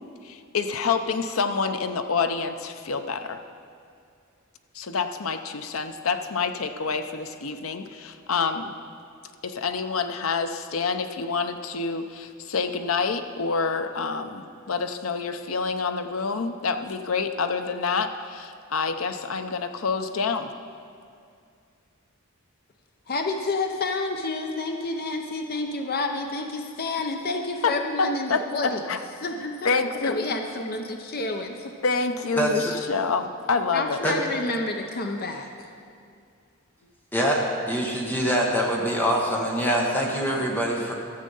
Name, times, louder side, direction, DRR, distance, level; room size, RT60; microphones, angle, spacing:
voice 1, 0.2-3.4 4.7-8.8 9.4-20.5 27.6-29.0 29.6-30.2 31.8-34.0, left 4 dB, 85° left, 8 dB, 0.7 m, -27 dB
voice 2, 23.1-28.8 29.2-29.7 30.0-31.7 33.7-35.7, left 2 dB, 45° left, 4 dB, 0.8 m, -29 dB
voice 3, 32.4-32.7 34.0-34.1 37.1-37.4 37.7-40.9, equal, 10° left, -1 dB, 1.1 m, -24 dB
13.5 x 7.5 x 5.5 m, 2.3 s
head